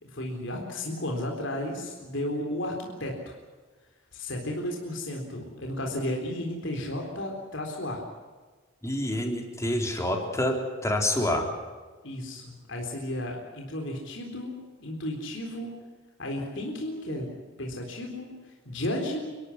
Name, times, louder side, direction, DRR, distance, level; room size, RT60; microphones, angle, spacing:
voice 1, 0.0-3.4 4.1-8.0 12.0-14.5 14.8-15.7 16.2-17.3 17.6-18.3 18.7-19.3, left 1 dB, 65° left, 1 dB, 3.9 m, -33 dB
voice 2, 8.8-10.6 10.8-11.5, left 1 dB, 15° left, 2 dB, 3.7 m, -27 dB
29.5 x 12.5 x 9.8 m, 1.3 s
head